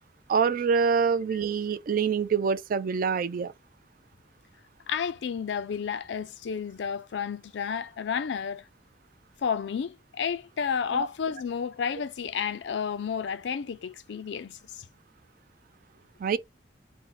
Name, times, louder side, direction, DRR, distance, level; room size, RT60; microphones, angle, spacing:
voice 1, 0.3-3.5 10.9-11.1 16.2-16.4, right 6 dB, 50° right, 0.3 m, -25 dB
voice 2, 4.9-8.7 9.4-14.8, left 7 dB, 80° left, 0.4 m, -31 dB
2.6 x 2.1 x 3.9 m
head